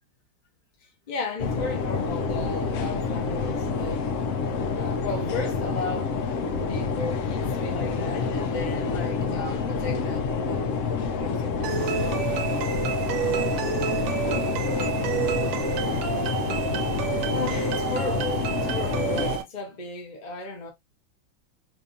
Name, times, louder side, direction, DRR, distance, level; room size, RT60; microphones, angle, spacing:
voice 1, 1.1-4.1 4.7-6.2 6.7-12.3 14.1-15.0 17.3-20.7, left 3 dB, 30° left, 1.0 m, -35 dB
sound 1, 1.4-19.4, left 5 dB, 80° left, 0.7 m, -28 dB
sound 2, 11.6-19.4, right 8 dB, 80° right, 1.4 m, -29 dB
4.4 x 2.6 x 2.6 m
omnidirectional pair, 2.1 m